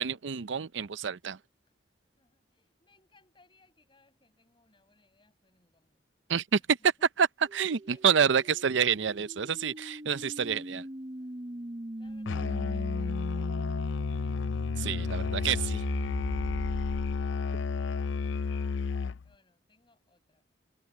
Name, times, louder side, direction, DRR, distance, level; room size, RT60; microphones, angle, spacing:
voice 1, 0.0-1.4 6.3-6.9 7.2-7.3 7.5-10.9 14.8-15.8, right 7 dB, 80° right, 0.6 m, -28 dB
voice 2, 2.2-6.0 6.5-7.3 7.8-8.9 11.2-14.3 19.2-20.4, left 2 dB, 25° left, 7.9 m, -67 dB
sound 1, 7.5-17.5, right 1 dB, 30° right, 0.9 m, -40 dB
Musical instrument, 12.3-19.3, left 5 dB, 90° left, 0.4 m, -31 dB
head